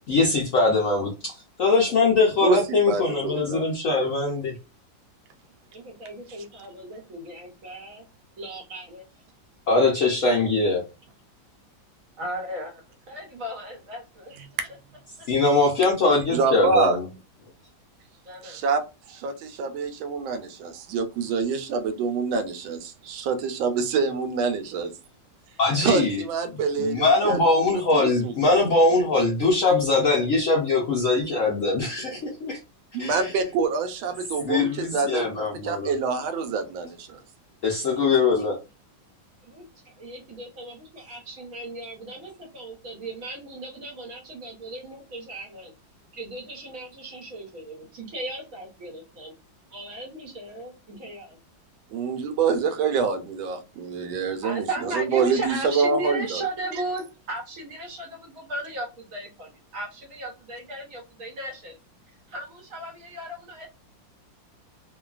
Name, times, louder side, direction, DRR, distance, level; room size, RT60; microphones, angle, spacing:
voice 1, 0.1-4.5 9.7-10.8 15.3-17.0 25.6-26.2 26.8-32.6 33.0-33.3 34.4-35.9 37.6-38.6, left 3 dB, 70° left, 0.7 m, -22 dB
voice 2, 2.9-3.7 6.5-6.6 14.6-14.7 16.3-17.0 18.4-18.8 19.1-24.9 25.8-27.4 27.7-28.6 32.9-37.2 51.9-56.4 56.7-56.8, right 5 dB, 85° right, 1.4 m, -26 dB
voice 3, 5.7-8.1 8.4-9.1 12.2-12.8 13.1-14.3 18.2-18.6 37.6-38.0 39.5-39.7 40.0-45.7 46.1-49.3 49.7-51.4 54.4-61.8 62.3-63.7, right 1 dB, 60° right, 0.9 m, -36 dB
3.1 x 2.2 x 2.3 m
omnidirectional pair, 2.1 m